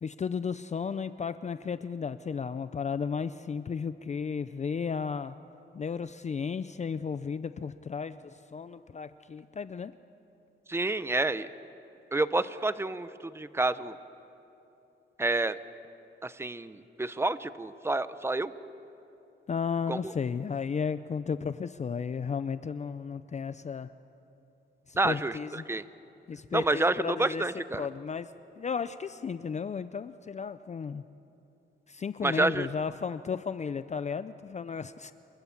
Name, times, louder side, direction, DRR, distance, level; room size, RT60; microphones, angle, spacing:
voice 1, 0.0-5.4 5.7-9.9 19.5-23.9 24.9-25.6 26.3-27.4 27.8-28.3 28.6-31.0 31.9-35.1, left 6 dB, 35° left, 13 dB, 0.5 m, -34 dB
voice 2, 10.7-11.5 12.1-14.0 15.2-15.6 16.2-18.5 19.9-20.1 25.0-25.8 26.5-27.9 32.2-32.7, right 2 dB, 10° right, 14 dB, 0.7 m, -29 dB
29.0 x 24.0 x 7.2 m, 2.9 s
wide cardioid pair, 125°, 20 cm